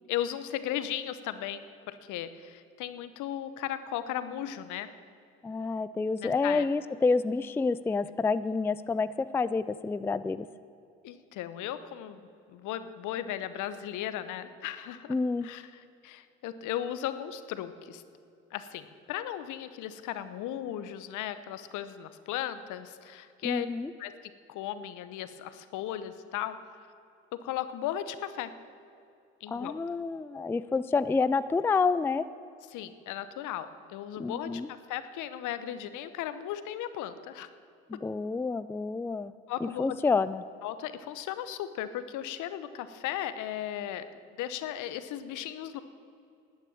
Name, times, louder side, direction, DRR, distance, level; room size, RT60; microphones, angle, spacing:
voice 1, 0.1-4.9 6.2-6.7 11.0-12.2 12.5-15.2 15.4-18.0 18.5-23.7 24.0-24.1 24.5-26.6 27.3-28.5 29.4-29.8 32.7-34.6 34.9-37.5 39.5-40.0 40.6-44.1 44.4-45.8, left 11 dB, 70° left, 12 dB, 0.9 m, -36 dB
voice 2, 5.4-10.5 15.1-15.5 23.4-23.9 29.5-32.3 34.2-34.7 37.9-39.3 39.6-40.4, left 4 dB, 10° left, 15 dB, 0.3 m, -28 dB
11.5 x 9.0 x 8.5 m, 2.6 s
hypercardioid pair, 65°, 32 cm